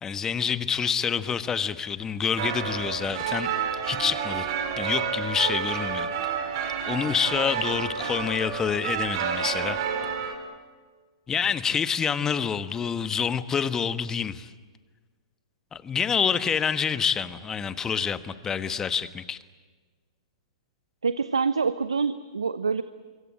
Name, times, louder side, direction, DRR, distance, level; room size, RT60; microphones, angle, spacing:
voice 1, 0.0-3.5 3.9-4.5 4.8-6.1 6.9-9.8 11.3-14.5 15.7-19.4, left 7 dB, 20° left, 13 dB, 1.2 m, -27 dB
sound 1, 2.4-10.4, right 7 dB, 50° right, 4.2 m, -30 dB
voice 2, 21.0-22.8, right 5 dB, 80° right, 14 dB, 0.8 m, -26 dB
25.5 x 24.0 x 8.8 m, 1.4 s
figure-of-eight pair, 110°, 3 cm